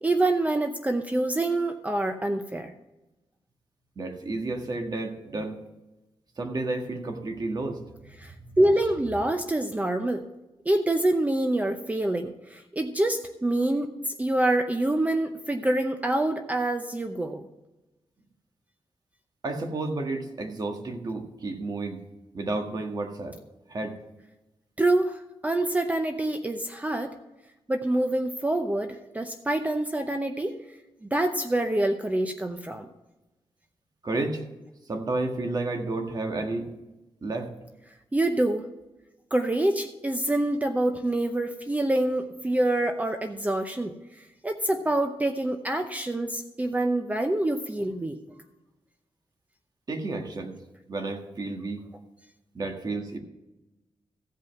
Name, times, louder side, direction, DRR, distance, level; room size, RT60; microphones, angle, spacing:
voice 1, 0.0-2.7 8.2-10.2 10.7-17.5 24.8-27.1 27.7-30.6 31.1-32.9 38.1-38.7 39.3-48.4, right 1 dB, 15° right, 6 dB, 0.7 m, -26 dB
voice 2, 3.9-5.6 6.4-7.8 8.2-8.6 19.4-22.0 22.3-23.4 23.7-24.0 34.0-34.4 34.9-36.7 37.2-37.5 49.9-50.6 50.9-51.8 52.5-53.2, right 2 dB, 40° right, 3 dB, 1.6 m, -31 dB
15.0 x 5.5 x 5.9 m, 1.0 s
wide cardioid pair, 115°, 10 cm